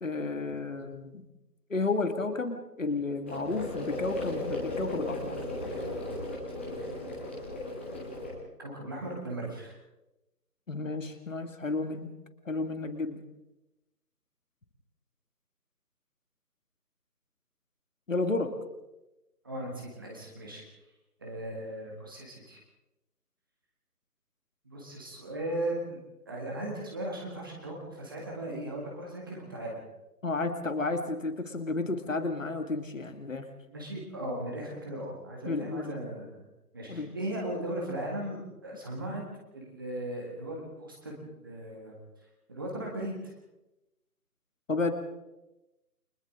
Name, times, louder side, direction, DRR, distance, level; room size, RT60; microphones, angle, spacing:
voice 1, 0.0-1.2 1.7-5.4 10.7-12.1 12.5-13.2 18.1-18.5 30.2-33.5 35.4-35.9 36.9-37.2 44.7-44.9, left 3 dB, 50° left, 7 dB, 2.2 m, -32 dB
sound 1, 3.3-8.3, left 1 dB, 5° left, 1.6 m, -36 dB
voice 2, 8.6-9.7 19.4-20.6 21.2-22.6 24.6-26.0 26.3-29.8 33.7-36.5 36.7-39.2 39.5-42.0 42.5-43.3, right 1 dB, 15° right, -2 dB, 1.8 m, -37 dB
29.5 x 24.0 x 3.8 m, 0.98 s
figure-of-eight pair, 165°, 49 cm